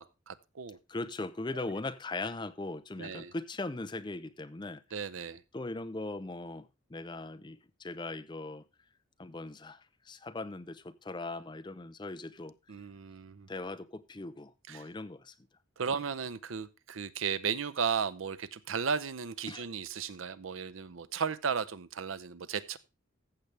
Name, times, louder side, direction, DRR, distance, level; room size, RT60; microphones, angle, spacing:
voice 1, 0.0-0.8 1.5-1.7 3.0-3.3 4.9-5.4 12.7-13.5 14.7-14.8 15.8-22.8, right 6 dB, 85° right, 0.6 m, -35 dB
voice 2, 0.9-4.8 5.5-8.6 9.2-12.5 13.5-15.3 19.5-19.7, left 2 dB, 20° left, 0.5 m, -39 dB
14.5 x 6.9 x 3.3 m
head